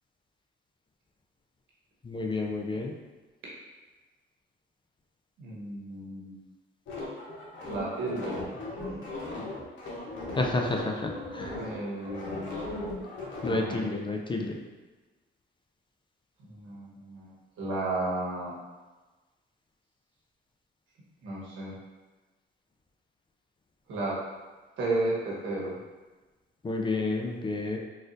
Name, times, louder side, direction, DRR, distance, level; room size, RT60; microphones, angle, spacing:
voice 1, 2.0-2.9 10.4-11.6 13.4-14.6 26.6-27.8, left 2 dB, 25° left, 2 dB, 0.4 m, -30 dB
voice 2, 5.4-6.4 7.7-8.3 11.5-12.6 13.4-13.9 16.4-18.5 21.2-21.7 23.9-24.2 24.8-25.8, right 2 dB, 85° right, -5 dB, 1.2 m, -33 dB
sound 1, 6.9-13.6, left 2 dB, 70° left, 0.9 m, -37 dB
4.0 x 2.5 x 2.5 m, 1.2 s
cardioid pair, 90°, 20 cm